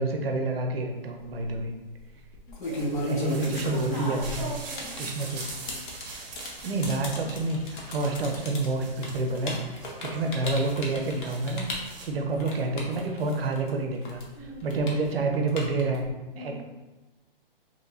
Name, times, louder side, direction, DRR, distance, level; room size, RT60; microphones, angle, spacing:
voice 1, 0.0-1.7 3.1-4.4 5.0-5.5 6.6-16.1 16.4-16.7, right 2 dB, 85° right, 3 dB, 0.6 m, -29 dB
sound 1, 1.2-1.6 2.3-13.7 14.0-16.1, left 1 dB, 60° left, 0.7 m, -34 dB
voice 2, 2.5-3.5 3.8-5.1 14.4-14.7 16.3-16.7, right 1 dB, 20° left, -5 dB, 0.5 m, -39 dB
sound 2, 2.6-12.0, right 3 dB, 45° right, 0.7 m, -44 dB
3.0 x 2.7 x 2.3 m, 1.1 s
hypercardioid pair, 145°, 29 cm